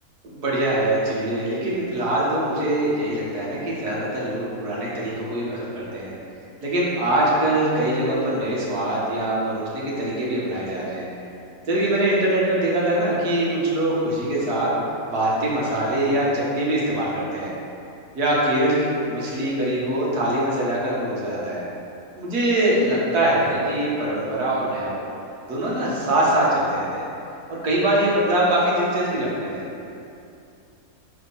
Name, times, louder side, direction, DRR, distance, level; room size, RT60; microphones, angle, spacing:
voice 1, 0.2-6.1 6.6-11.1 11.7-14.7 15.1-17.5 18.2-21.7 22.2-25.1 25.5-27.1 27.5-29.6, right 1 dB, 80° right, -6 dB, 1.8 m, -23 dB
5.8 x 3.6 x 5.4 m, 2.6 s
omnidirectional pair, 1.6 m